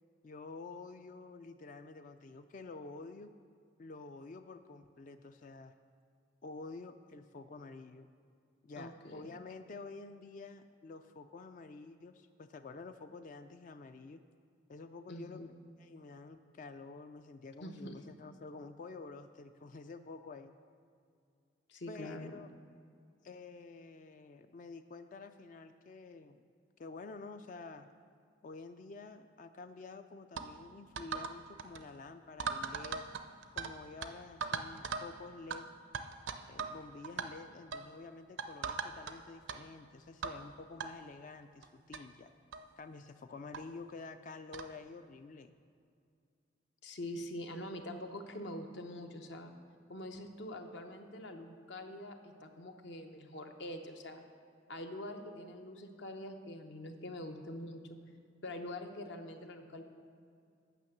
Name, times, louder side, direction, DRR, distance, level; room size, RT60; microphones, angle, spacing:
voice 1, 0.2-3.3 3.8-5.7 6.4-8.1 8.6-14.2 14.7-15.5 15.8-20.5 21.9-22.5 23.2-26.4 26.8-27.9 28.4-33.1 33.5-35.7 36.5-42.3 42.8-45.5, left 3 dB, 45° left, 9 dB, 0.3 m, -49 dB
voice 2, 8.8-9.3 15.1-15.5 17.6-18.0 21.7-22.3 46.8-49.5 49.9-54.2 54.7-57.8 58.4-59.8, left 1 dB, 65° left, 5 dB, 0.8 m, -44 dB
sound 1, 30.4-30.5 31.0-31.3 31.6-31.8 32.4-33.7 34.0-34.1 34.4-35.1 35.5-35.6 35.9-36.8 37.0-37.3 37.7-37.9 38.4-39.1 39.5-39.6 40.2-40.4 40.8-40.9 41.6-41.7 41.9-42.0 42.5-42.7 43.5-43.6 44.5-44.7, right 5 dB, 75° right, 0.5 m, -38 dB
9.2 x 6.0 x 7.1 m, 2.3 s
head